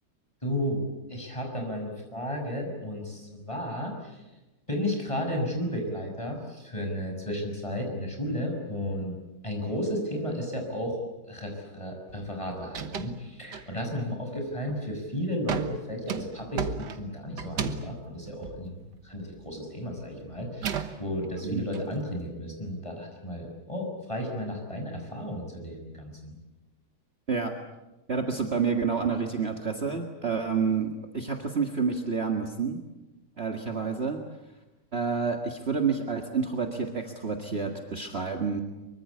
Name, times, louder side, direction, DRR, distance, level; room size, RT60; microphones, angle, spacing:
voice 1, 0.4-0.8 1.1-4.3 4.7-9.2 9.4-11.0 11.3-26.3, equal, 15° left, 2 dB, 6.3 m, -33 dB
sound 1, 12.1-12.4 12.6-13.2 13.5-14.0 14.5-14.9 15.5-19.5 19.8-21.8, right 6 dB, 90° right, 2.0 m, -35 dB
voice 2, 28.1-32.8 33.4-34.2 34.9-38.6, right 5 dB, 40° right, 3 dB, 2.1 m, -29 dB
24.5 x 24.0 x 8.4 m, 1.0 s
omnidirectional pair, 1.8 m